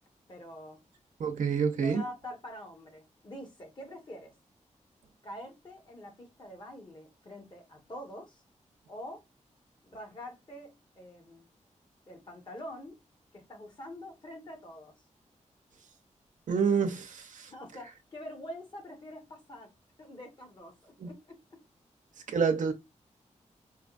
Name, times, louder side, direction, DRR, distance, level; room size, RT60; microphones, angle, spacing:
voice 1, 0.3-0.8 1.8-4.3 5.2-8.4 8.9-9.2 9.8-11.5 12.1-13.0 13.3-14.9 17.5-19.7 20.0-21.6, left 1 dB, 40° left, 1.4 m, -45 dB
voice 2, 1.2-2.0 16.5-17.5 21.0-21.1 22.3-22.7, right 6 dB, 85° right, 0.7 m, -28 dB
4.6 x 2.3 x 2.5 m
wide cardioid pair, 115°, 13 cm